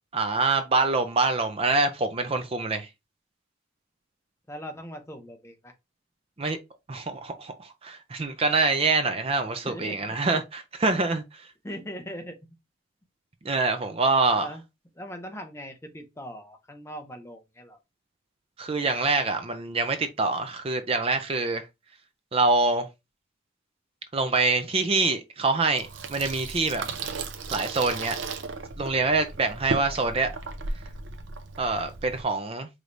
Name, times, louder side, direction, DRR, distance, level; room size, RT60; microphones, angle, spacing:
voice 1, 0.1-2.9 6.4-6.6 6.9-11.5 13.4-14.5 18.6-21.7 22.3-22.9 24.1-26.8 27.5-28.2 28.8-30.3 31.6-32.7, right 3 dB, 30° right, 0.5 m, -25 dB
voice 2, 4.5-5.7 9.6-10.0 10.3-10.4 11.6-12.4 14.4-14.6 14.9-17.8, equal, 15° left, 0.6 m, -40 dB
Water tap faucet / Sink (filling or washing), 25.8-32.2, right 4 dB, 70° right, 0.6 m, -35 dB
4.8 x 3.2 x 2.6 m
head